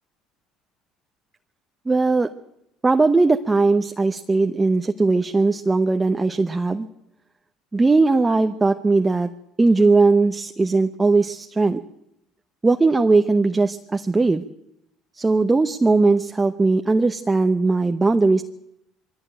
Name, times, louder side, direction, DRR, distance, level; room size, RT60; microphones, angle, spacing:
voice 1, 1.9-2.3 2.8-6.9 7.7-9.3 9.6-11.8 12.6-14.4 15.2-18.4, right 3 dB, 15° right, 6 dB, 0.9 m, -19 dB
22.5 x 16.0 x 9.0 m, 0.82 s
supercardioid pair, 100°, 0 cm